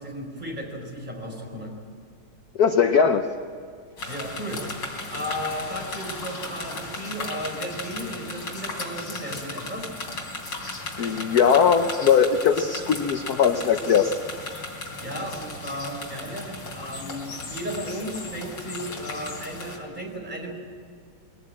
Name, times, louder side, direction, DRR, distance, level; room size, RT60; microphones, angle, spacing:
voice 1, 0.0-1.7 4.1-4.6 5.1-9.9 15.0-20.5, equal, 20° right, 0 dB, 4.6 m, -34 dB
voice 2, 2.6-3.2 11.0-14.1, left 7 dB, 55° left, 7 dB, 1.2 m, -20 dB
sound 1, 4.0-19.8, left 2 dB, 80° left, 4.3 m, -36 dB
22.0 x 18.5 x 8.7 m, 2.2 s
omnidirectional pair, 2.3 m